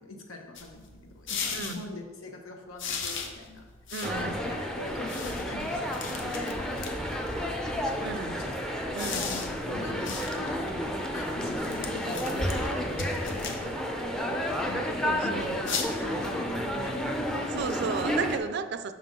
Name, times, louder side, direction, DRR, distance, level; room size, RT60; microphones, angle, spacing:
voice 1, 0.0-3.6 4.2-8.5 9.1-17.6 18.7-18.8, left 2 dB, 90° left, 2 dB, 1.0 m, -43 dB
sound 1, 0.6-1.8 2.8-7.3 8.8-14.2 15.6-15.8, left 5 dB, 65° left, 0.7 m, -38 dB
voice 2, 1.5-1.8 3.9-4.4 8.0-8.5 8.9-9.3 15.0-15.5 17.5-18.9, right 5 dB, 55° right, 11 dB, 0.4 m, -34 dB
sound 2, 4.0-18.4, equal, 5° left, 0.5 m, -31 dB
6.1 x 5.7 x 3.7 m, 1.4 s
head